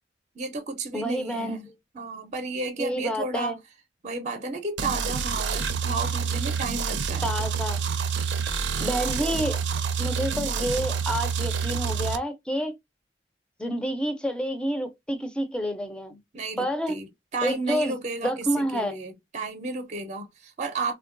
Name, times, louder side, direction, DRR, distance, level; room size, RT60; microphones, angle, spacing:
voice 1, 0.3-3.6 4.0-7.3 16.3-20.9, right 3 dB, 40° right, 0.6 m, -33 dB
voice 2, 0.9-1.6 2.8-3.6 7.2-7.8 8.8-9.6 10.0-12.7 13.6-16.2 16.6-17.0 17.4-17.9 18.2-19.0, equal, 5° left, 0.5 m, -28 dB
sound 1, 4.8-12.2, right 6 dB, 90° right, 0.5 m, -28 dB
3.4 x 2.2 x 2.4 m
head